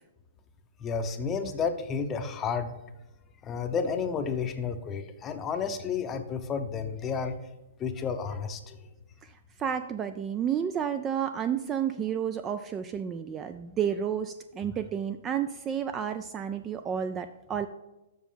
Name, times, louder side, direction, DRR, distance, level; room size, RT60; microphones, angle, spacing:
voice 1, 0.8-2.8 3.4-7.3 7.8-8.8, left 6 dB, 15° left, 7 dB, 0.7 m, -31 dB
voice 2, 9.6-17.7, right 8 dB, 15° right, 10 dB, 0.3 m, -31 dB
7.2 x 6.0 x 5.6 m, 1.0 s
hypercardioid pair, 160°, 0 cm